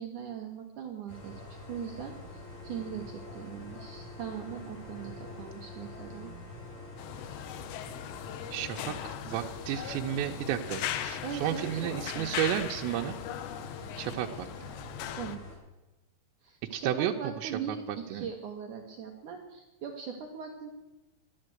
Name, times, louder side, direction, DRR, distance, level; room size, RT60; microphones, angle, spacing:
voice 1, 0.0-6.3 11.2-12.3 15.2-15.4 16.4-20.7, right 7 dB, 70° right, 2 dB, 2.0 m, -40 dB
sound 1, 1.1-15.6, left 2 dB, 30° left, 3.8 m, -46 dB
Bowed string instrument, 2.1-8.1, left 2 dB, 15° right, 4.9 m, -53 dB
sound 2, 7.0-15.4, left 11 dB, 80° left, 2.9 m, -39 dB
voice 2, 8.5-13.2 14.0-14.7 16.7-18.3, right 11 dB, 85° right, 2 dB, 2.9 m, -33 dB
12.0 x 10.5 x 7.8 m, 1.0 s
omnidirectional pair, 5.0 m